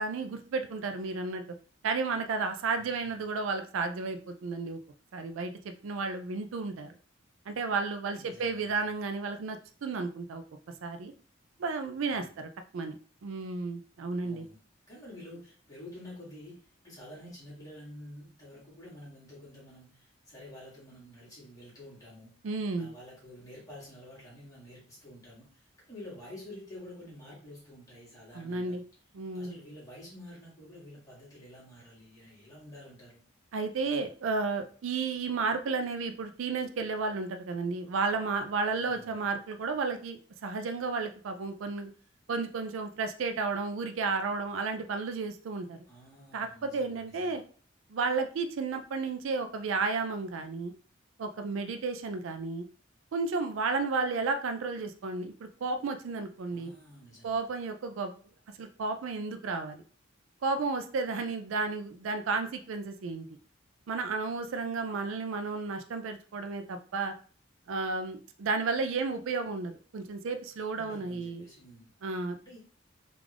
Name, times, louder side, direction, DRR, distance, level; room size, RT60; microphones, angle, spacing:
voice 1, 0.0-1.4 1.8-4.8 5.1-5.5 5.8-6.9 7.5-10.4 10.8-11.1 11.6-14.5 22.4-22.9 28.3-28.8 29.1-29.5 33.5-41.9 42.3-45.8 46.3-47.4 47.9-50.7 51.2-52.7 53.1-56.7 57.2-58.1 58.6-59.8 60.4-63.3 63.9-67.1 67.7-71.4 72.0-72.4, right 4 dB, 70° right, 7 dB, 0.4 m, -32 dB
voice 2, 2.8-3.1 8.1-9.0 12.0-12.4 14.2-14.6 14.9-22.3 22.8-28.8 29.3-33.2 38.7-39.3 45.9-47.4 56.5-57.4 70.7-71.9 72.4-72.6, left 1 dB, 15° left, -7 dB, 1.6 m, -49 dB
3.5 x 2.4 x 3.3 m, 0.41 s
head